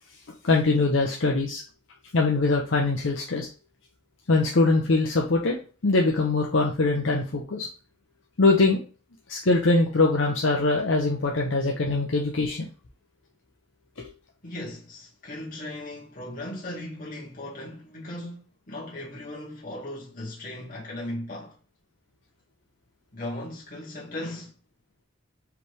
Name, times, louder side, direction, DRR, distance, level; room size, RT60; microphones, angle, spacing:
voice 1, 0.4-1.6 2.1-3.5 4.3-5.6 5.8-7.7 8.4-8.8 9.3-12.7 14.0-14.1, left 3 dB, 70° left, 0.7 m, -22 dB
voice 2, 14.4-21.6 23.1-24.5, left 1 dB, 40° left, 1.9 m, -37 dB
4.9 x 3.2 x 3.3 m
head